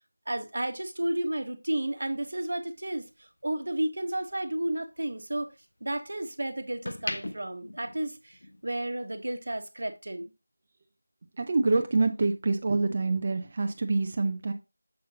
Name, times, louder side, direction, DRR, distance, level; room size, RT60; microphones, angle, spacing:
voice 1, 0.3-5.5 5.8-10.3, right 1 dB, 60° right, 1.0 m, -32 dB
sound 1, 2.0-4.3 4.7-6.2 6.6-8.7 9.0-9.3, left 1 dB, 70° left, 0.7 m, -40 dB
voice 2, 11.4-14.5, right 3 dB, 25° right, 0.4 m, -26 dB
6.5 x 5.5 x 2.8 m
figure-of-eight pair, 180°, 0 cm